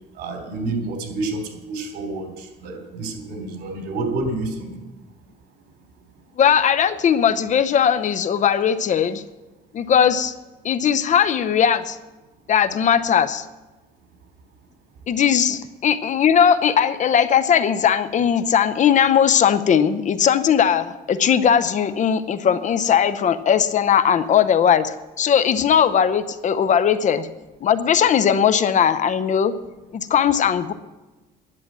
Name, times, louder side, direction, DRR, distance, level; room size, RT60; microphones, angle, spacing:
voice 1, 0.1-4.7, right 2 dB, 70° right, 4 dB, 3.3 m, -29 dB
voice 2, 6.4-9.2 9.7-10.3 10.6-12.0 12.5-13.4 15.1-27.3 27.6-29.5 29.9-30.7, left 8 dB, 45° left, 12 dB, 0.8 m, -18 dB
11.0 x 10.0 x 7.5 m, 1.1 s
cardioid pair, 110°, 17 cm